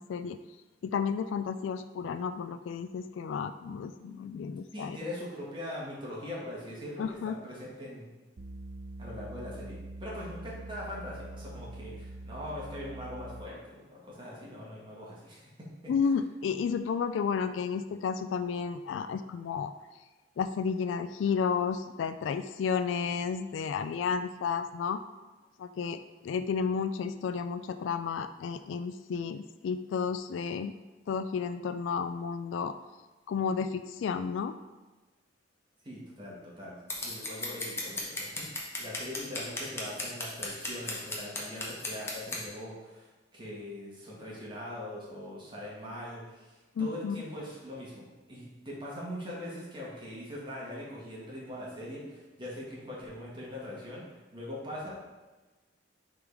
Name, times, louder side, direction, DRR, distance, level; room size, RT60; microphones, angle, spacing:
voice 1, 0.8-5.0 7.0-7.4 15.9-19.7 20.4-25.0 25.6-30.7 31.1-32.7 33.3-34.5 46.8-47.2, left 6 dB, 85° left, 10 dB, 0.3 m, -32 dB
voice 2, 4.7-8.1 9.0-15.5 35.8-36.8 37.0-54.9, left 1 dB, 25° right, -5 dB, 1.7 m, -41 dB
sound 1, 8.4-13.7, right 1 dB, 80° right, 0.6 m, -44 dB
Scissors, 36.9-42.4, left 2 dB, 15° left, 1.0 m, -36 dB
6.2 x 3.8 x 4.8 m, 1.2 s
head